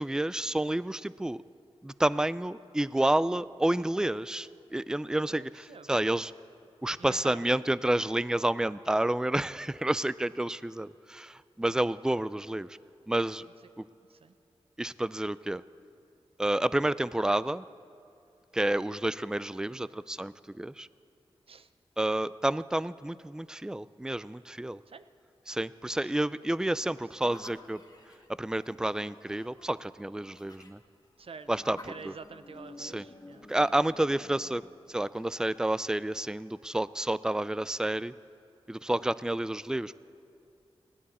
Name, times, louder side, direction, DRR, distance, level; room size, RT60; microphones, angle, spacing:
voice 1, 0.0-1.4 1.8-6.3 6.8-12.7 13.1-13.5 13.8-13.9 14.8-15.6 16.4-17.6 18.5-20.9 22.0-24.8 25.5-27.8 28.4-30.8 31.5-32.1 32.8-33.0 33.5-34.6 34.9-38.1 38.7-40.0, right 1 dB, 5° right, 17 dB, 0.4 m, -30 dB
voice 2, 5.3-5.9 7.0-7.8 14.1-14.3 21.5-21.7 24.9-25.0 26.0-26.1 31.2-31.5 31.9-33.4, right 5 dB, 65° right, 12 dB, 0.7 m, -47 dB
sound 1, 27.2-36.8, left 2 dB, 40° left, 1.8 m, -53 dB
19.5 x 17.0 x 4.3 m, 2.6 s
cardioid pair, 50°, 11 cm